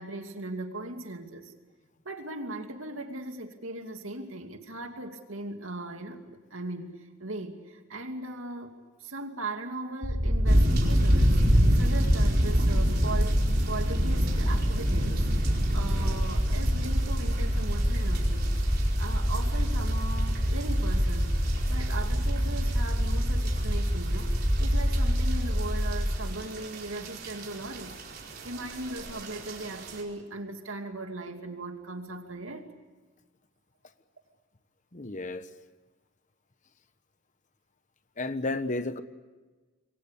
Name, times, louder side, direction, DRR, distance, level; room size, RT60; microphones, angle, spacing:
voice 1, 0.0-1.5 2.0-8.7 9.0-11.4 11.8-13.4 13.7-15.3 15.7-18.5 19.0-21.3 21.7-28.0 28.4-32.7, right 2 dB, 80° right, 5 dB, 2.6 m, -38 dB
sound 1, 10.0-26.2, equal, 20° right, 5.2 m, -26 dB
sound 2, 10.4-30.0, equal, 50° right, 4.8 m, -31 dB
voice 2, 34.9-35.5 38.2-39.0, left 2 dB, 35° left, 12 dB, 1.1 m, -32 dB
27.0 x 23.0 x 8.4 m, 1.3 s
head